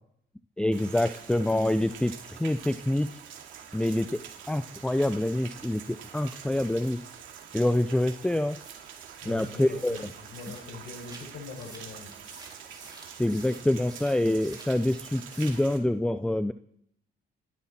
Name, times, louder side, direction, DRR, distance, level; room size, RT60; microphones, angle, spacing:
voice 1, 0.6-3.1 3.7-7.0 7.5-8.6 9.3-10.0 13.0-16.5, left 1 dB, 5° left, 11 dB, 0.6 m, -26 dB
Rain, 0.7-15.8, right 8 dB, 80° right, 2.5 m, -46 dB
sound 1, 8.6-14.8 15.1-15.7, right 3 dB, 20° right, 3.8 m, -50 dB
voice 2, 9.2-10.0 10.3-12.2, left 4 dB, 65° left, -2 dB, 6.2 m, -42 dB
28.0 x 11.5 x 4.4 m, 0.72 s
cardioid pair, 90°, 20 cm